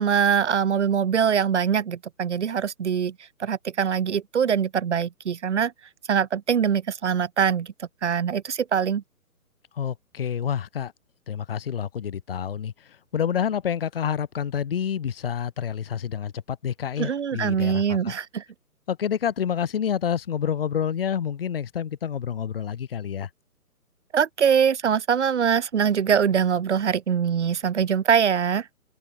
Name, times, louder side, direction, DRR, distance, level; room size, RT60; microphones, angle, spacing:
voice 1, 0.0-3.1 3.4-5.7 6.1-9.0 17.0-18.4 24.1-28.7, right 7 dB, 50° right, 0.6 m, -23 dB
voice 2, 9.7-10.9 11.3-18.1 18.9-23.3, left 8 dB, 40° left, 1.3 m, -28 dB
figure-of-eight pair, 140°, 45 cm